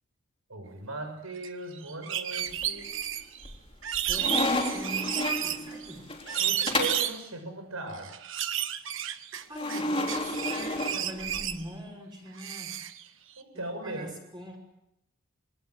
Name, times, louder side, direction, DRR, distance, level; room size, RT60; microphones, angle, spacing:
voice 1, 0.5-2.9 6.4-8.1 13.4-14.1, right 2 dB, 90° right, 6 dB, 6.5 m, -38 dB
sound 1, 1.4-1.5 1.7-3.5 3.8-5.9 6.3-7.2 7.9-9.8 10.1-11.6 12.4-13.0, right 11 dB, 65° right, 1.5 m, -32 dB
sound 2, 2.4-3.0 3.4-7.1 9.5-11.6, left 2 dB, 25° left, 3.6 m, -32 dB
voice 2, 4.1-6.1 9.0-9.1 9.5-12.7 13.5-14.6, equal, 20° right, 2 dB, 5.8 m, -43 dB
26.5 x 23.5 x 7.8 m, 0.83 s
head